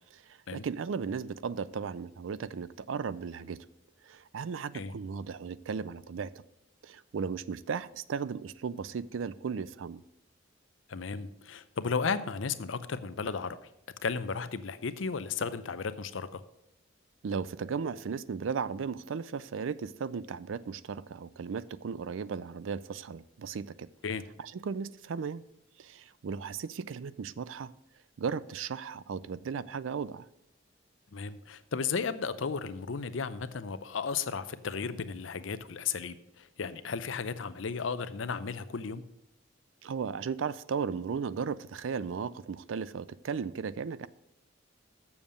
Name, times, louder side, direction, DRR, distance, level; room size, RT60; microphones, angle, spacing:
voice 1, 0.1-3.7 4.0-6.3 6.8-10.0 17.2-23.9 24.4-25.4 25.8-27.7 28.2-30.3 39.8-44.1, right 6 dB, 75° right, 0.4 m, -36 dB
voice 2, 10.9-13.7 14.0-16.4 24.0-24.2 31.1-39.0, left 5 dB, 75° left, 0.6 m, -34 dB
7.2 x 7.1 x 6.4 m
head